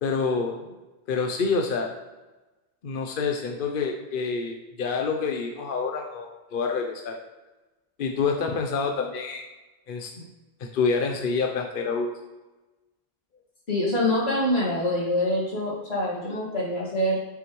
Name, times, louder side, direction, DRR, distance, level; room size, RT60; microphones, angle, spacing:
voice 1, 0.0-0.7 1.1-1.9 2.8-7.2 8.0-9.4 9.9-10.3 10.6-12.1, left 4 dB, 60° left, 3 dB, 0.8 m, -27 dB
voice 2, 13.7-17.2, left 1 dB, 85° left, -5 dB, 2.4 m, -25 dB
7.4 x 6.0 x 3.1 m, 1.1 s
omnidirectional pair, 1.0 m